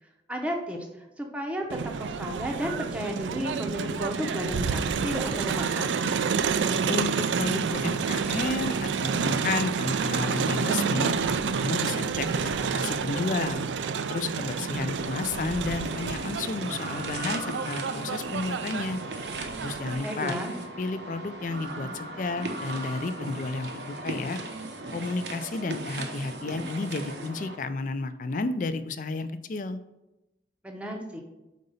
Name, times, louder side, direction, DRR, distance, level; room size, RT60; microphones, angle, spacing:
voice 1, 0.3-6.0 20.0-20.5 30.6-31.2, equal, 5° right, 1 dB, 0.7 m, -33 dB
Crowd, 1.7-19.9, right 5 dB, 90° right, 0.4 m, -29 dB
voice 2, 6.9-11.2 11.6-13.6 14.1-19.0 19.6-20.4 20.8-24.4 24.9-29.8, left 3 dB, 45° left, 11 dB, 0.4 m, -32 dB
sound 1, 15.0-27.6, right 2 dB, 75° right, 0.8 m, -37 dB
5.2 x 3.9 x 5.5 m, 0.97 s
head